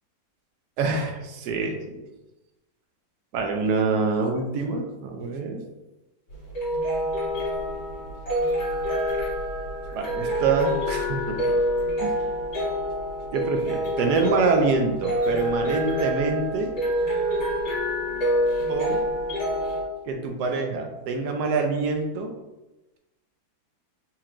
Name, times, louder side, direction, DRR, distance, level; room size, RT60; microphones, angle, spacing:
voice 1, 0.8-2.0 3.3-5.6 9.9-11.4 12.0-12.2 13.3-16.7 18.7-19.0 20.1-22.3, right 4 dB, 70° right, 3 dB, 1.0 m, -25 dB
sound 1, 6.3-19.8, equal, 65° left, 2.0 m, -27 dB
4.4 x 2.9 x 2.5 m, 1.0 s
omnidirectional pair, 2.1 m